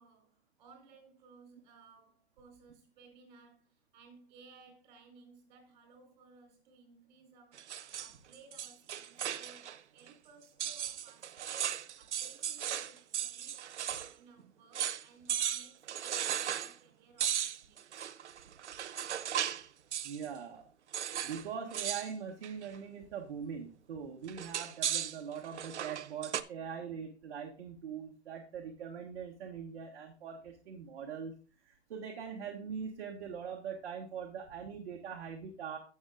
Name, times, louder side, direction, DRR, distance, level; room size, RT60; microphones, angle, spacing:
voice 1, 0.0-11.6 12.0-13.7 14.1-18.0, right 4 dB, 40° right, 4.5 m, -60 dB
sound 1, 7.5-9.8 10.1-10.2 10.6-14.1 14.4-14.5 14.7-15.0 15.3-16.7 17.2-19.7 19.9-20.3 20.9-21.4 21.7-22.1 22.4-22.8 24.3-26.4, right 10 dB, 85° right, 0.8 m, -36 dB
voice 2, 20.0-20.7 21.2-31.3 31.6-35.8, right 7 dB, 55° right, 1.8 m, -42 dB
14.5 x 7.3 x 2.5 m
hypercardioid pair, 165°, 34 cm